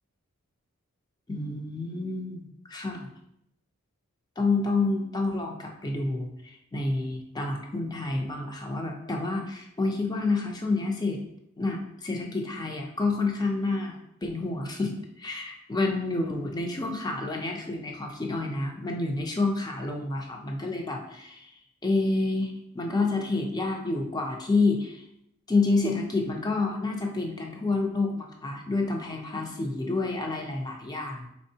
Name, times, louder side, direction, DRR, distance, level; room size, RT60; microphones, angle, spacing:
voice 1, 1.3-2.4 2.7-3.1 4.4-11.2 11.6-21.5 21.8-25.0 25.5-31.3, left 3 dB, 20° left, 2 dB, 0.4 m, -29 dB
4.4 x 3.5 x 2.7 m, 0.78 s
head